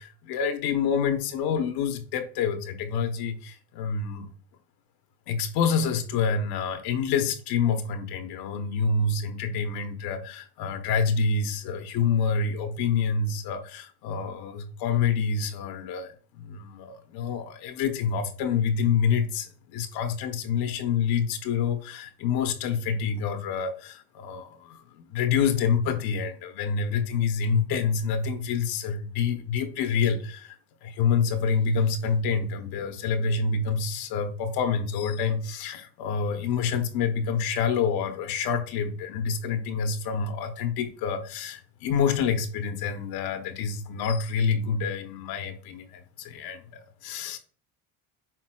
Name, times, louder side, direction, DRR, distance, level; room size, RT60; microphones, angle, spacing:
voice 1, 0.0-4.3 5.3-30.6 30.8-47.4, left 6 dB, 70° left, 0.9 m, -27 dB
5.9 x 3.9 x 2.2 m
supercardioid pair, 105°, 39 cm